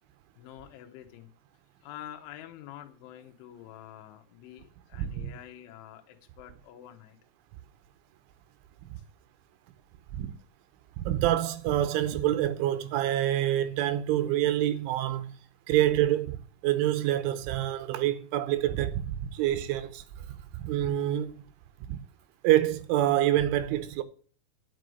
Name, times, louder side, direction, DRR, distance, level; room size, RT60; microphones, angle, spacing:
voice 1, 0.4-1.3 1.8-7.2 20.2-20.3, left 12 dB, 80° left, 3.3 m, -47 dB
voice 2, 5.0-5.3 10.1-10.3 11.0-15.3 15.7-16.4 16.6-20.0 20.5-21.3 21.9-22.0 22.4-24.0, right 13 dB, 85° right, 3.1 m, -26 dB
10.5 x 6.3 x 6.5 m
omnidirectional pair, 5.7 m